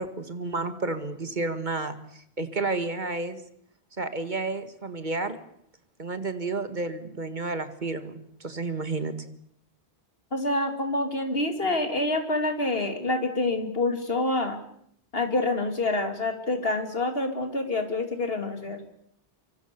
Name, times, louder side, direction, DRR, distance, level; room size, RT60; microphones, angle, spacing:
voice 1, 0.0-3.4 4.0-5.4 6.0-9.1, right 3 dB, 45° right, 10 dB, 2.0 m, -31 dB
voice 2, 10.3-14.6 15.1-18.8, left 2 dB, 65° left, 7 dB, 3.2 m, -27 dB
25.0 x 24.0 x 7.0 m, 0.71 s
omnidirectional pair, 1.1 m